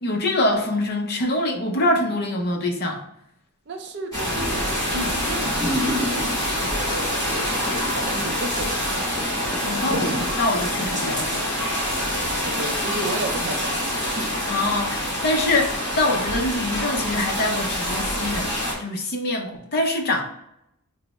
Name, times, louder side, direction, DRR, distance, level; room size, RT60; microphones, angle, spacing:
voice 1, 0.0-3.0 9.6-11.5 14.5-20.2, left 2 dB, 45° left, 2 dB, 0.5 m, -24 dB
voice 2, 3.7-6.1 6.6-7.7 7.9-9.0 12.4-14.3, right 2 dB, 50° right, 5 dB, 0.4 m, -33 dB
sound 1, 4.1-18.7, equal, 15° left, 1.4 m, -26 dB
sound 2, 4.4-4.8 5.2-5.3 5.6-6.6 7.3-8.0 8.3-8.4 8.8-8.9 9.2-11.0 11.5-11.6, left 1 dB, 10° right, 0.6 m, -29 dB
3.3 x 2.0 x 4.0 m, 0.78 s
head